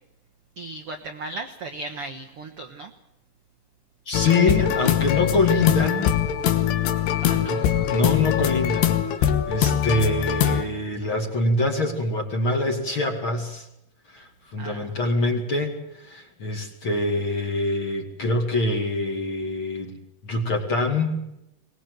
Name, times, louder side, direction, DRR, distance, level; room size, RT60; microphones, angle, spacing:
voice 1, 0.6-2.9 7.2-8.0 14.2-14.3 14.6-15.0, right 2 dB, 70° right, 4 dB, 1.3 m, -37 dB
sound 1, 4.1-10.6, left 10 dB, 85° left, 3.4 m, -22 dB
voice 2, 4.1-6.2 7.5-8.9 9.2-13.7 14.1-20.0 20.2-21.2, left 2 dB, 35° left, 3 dB, 2.5 m, -25 dB
23.0 x 19.0 x 8.0 m, 0.84 s
omnidirectional pair, 4.6 m